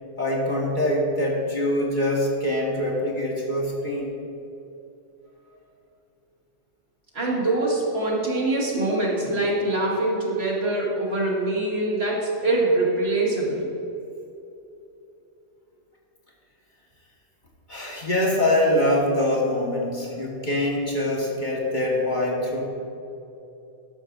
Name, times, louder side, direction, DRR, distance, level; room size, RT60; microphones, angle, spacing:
voice 1, 0.2-4.1 17.7-22.7, left 1 dB, 40° left, -3 dB, 1.6 m, -24 dB
voice 2, 7.1-13.7, right 2 dB, 55° right, -4 dB, 2.3 m, -24 dB
12.0 x 12.0 x 2.6 m, 2.8 s
omnidirectional pair, 1.3 m